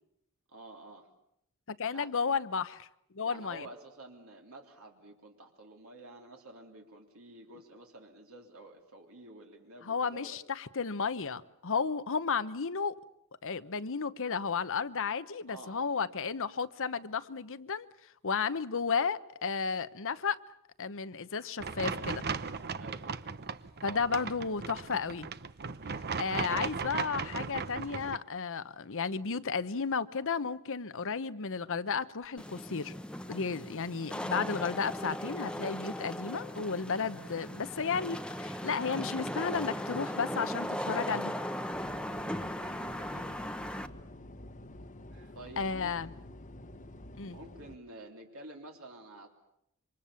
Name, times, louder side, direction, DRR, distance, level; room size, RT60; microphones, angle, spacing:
voice 1, 0.5-1.1 1.9-2.1 3.2-10.4 15.5-16.1 22.8-23.3 23.8-24.3 43.0-43.3 45.1-46.1 47.3-49.3, right 2 dB, 70° right, 2 dB, 3.5 m, -50 dB
voice 2, 1.7-2.9 3.1-3.7 9.8-12.9 13.4-17.9 18.2-20.4 20.8-22.2 23.8-25.3 25.9-32.9 33.3-41.3 45.6-46.1 47.2-47.4, left 5 dB, 60° left, 13 dB, 1.0 m, -33 dB
sound 1, 21.6-28.2, right 5 dB, 45° right, 0.9 m, -37 dB
Wind / Rain, 32.4-43.9, equal, 5° left, 1.1 m, -38 dB
sound 2, 41.7-47.8, left 1 dB, 35° left, 1.3 m, -48 dB
27.5 x 25.0 x 7.2 m, 0.77 s
head